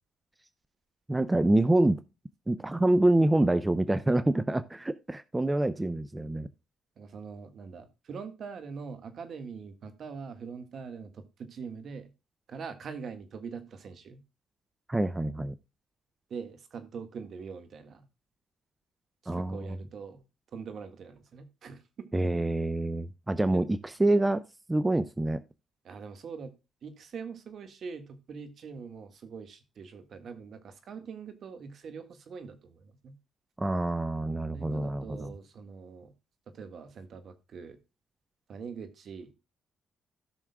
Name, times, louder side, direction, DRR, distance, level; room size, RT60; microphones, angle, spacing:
voice 1, 1.1-2.0 2.5-6.5 14.9-15.5 19.3-19.7 22.1-24.4 24.7-25.4 33.6-35.3, right 1 dB, 15° right, 0.6 m, -26 dB
voice 2, 6.9-12.1 12.5-14.2 16.3-18.1 19.2-20.2 20.5-22.0 22.3-22.4 23.5-23.7 25.8-26.5 26.8-33.1 34.5-36.1 36.5-37.8 38.5-39.3, right 5 dB, 60° right, 1.6 m, -43 dB
17.0 x 6.2 x 2.3 m
cardioid pair, 90°, 0 cm